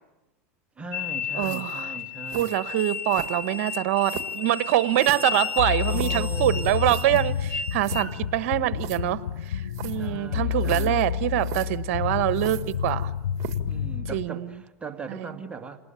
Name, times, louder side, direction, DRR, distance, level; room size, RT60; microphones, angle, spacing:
voice 1, 0.8-2.6 5.9-6.7 9.9-11.2 13.7-15.8, right 4 dB, 15° right, 5 dB, 2.3 m, -39 dB
sound 1, 0.9-8.1, left 6 dB, 25° left, 4.2 m, -33 dB
voice 2, 1.3-2.0 2.3-13.1 14.1-14.5 15.1-15.3, right 14 dB, 70° right, 13 dB, 1.2 m, -25 dB
sound 2, 1.4-1.8 2.3-2.6 3.1-3.6 4.1-4.4 5.0-6.3 6.8-7.2 7.5-7.6 7.8-8.1 8.8-9.0 9.7-10.1 10.6-11.1 11.4-11.7 12.3-13.0 13.4-13.7, right 12 dB, 50° right, 1.9 m, -39 dB
sound 3, 5.6-14.2, left 9 dB, 90° left, 0.9 m, -29 dB
28.5 x 20.0 x 9.2 m, 1.0 s
supercardioid pair, 110°, 8 cm